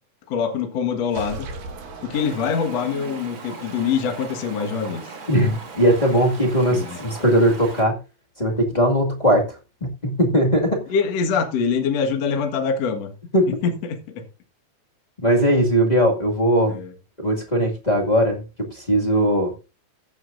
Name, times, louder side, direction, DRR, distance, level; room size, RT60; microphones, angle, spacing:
voice 1, 0.3-1.5 2.0-5.1 6.7-7.0 10.9-13.1 13.6-14.2 16.7-16.9, left 6 dB, 55° left, 2.4 m, -24 dB
sound 1, 1.1-3.2, right 2 dB, 70° right, 3.9 m, -37 dB
Stream, 2.1-7.8, right 3 dB, 40° right, 2.5 m, -38 dB
voice 2, 5.3-8.0 8.4-10.9 13.3-13.5 15.2-16.8 17.2-19.5, equal, 15° left, 1.5 m, -19 dB
15.0 x 11.0 x 2.6 m
omnidirectional pair, 4.0 m